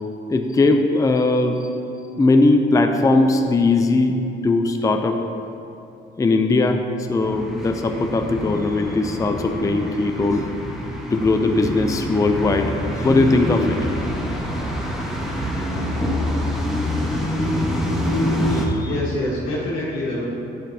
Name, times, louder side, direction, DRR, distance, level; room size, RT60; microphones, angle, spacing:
voice 1, 0.3-1.6 2.2-5.2 6.2-6.8 7.1-10.5 11.1-13.9 18.5-18.9, left 2 dB, 15° left, 5 dB, 0.4 m, -19 dB
sound 1, 7.2-18.7, left 1 dB, ahead, 1.2 m, -26 dB
voice 2, 18.8-20.3, left 1 dB, 85° left, -6 dB, 1.5 m, -26 dB
9.3 x 7.2 x 2.7 m, 2.7 s
cardioid pair, 90°, 20 cm